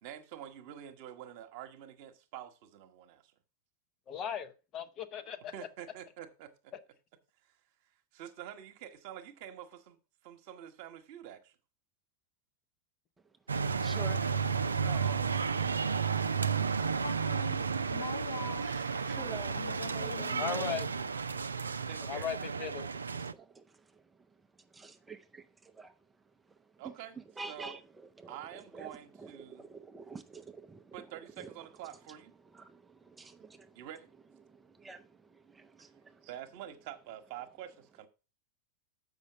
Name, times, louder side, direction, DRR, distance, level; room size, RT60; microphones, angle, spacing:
voice 1, 0.0-3.3 5.5-6.7 8.1-11.6 14.8-17.4 21.9-22.3 26.8-27.2 27.5-27.7 28.3-29.6 30.9-32.3 33.7-34.1 36.2-38.1, right 11 dB, 50° right, 1.2 m, -47 dB
voice 2, 4.1-5.5 20.4-20.9 22.1-22.8, left 8 dB, 30° left, 0.8 m, -37 dB
voice 3, 13.5-14.4 18.6-19.6 19.9-20.5 22.8-31.5 32.4-33.9 34.4-36.3, right 4 dB, 10° right, 0.6 m, -50 dB
sound 1, 13.5-23.3, right 5 dB, 75° right, 0.4 m, -32 dB
voice 4, 17.0-18.7 19.5-20.8, left 6 dB, 65° left, 1.2 m, -43 dB
7.4 x 5.3 x 6.1 m
figure-of-eight pair, 90°, 0 cm